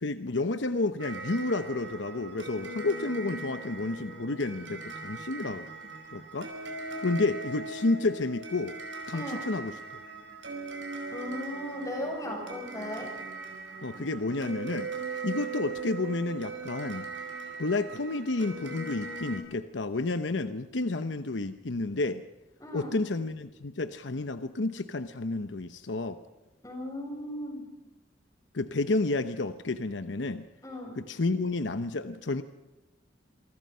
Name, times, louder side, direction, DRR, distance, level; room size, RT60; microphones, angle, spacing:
voice 1, 0.0-5.7 6.1-6.5 7.0-8.8 9.1-10.0 13.8-17.1 17.6-22.2 22.7-26.2 28.5-30.5 31.0-32.4, left 2 dB, 75° left, 10 dB, 0.9 m, -30 dB
sound 1, 1.0-19.4, right 3 dB, 85° right, 5.1 m, -40 dB
voice 2, 9.1-9.4 11.1-13.1 22.6-22.9 26.6-27.7 30.6-31.0, left 1 dB, 20° left, 1 dB, 7.6 m, -37 dB
27.0 x 24.0 x 5.6 m, 1.0 s
head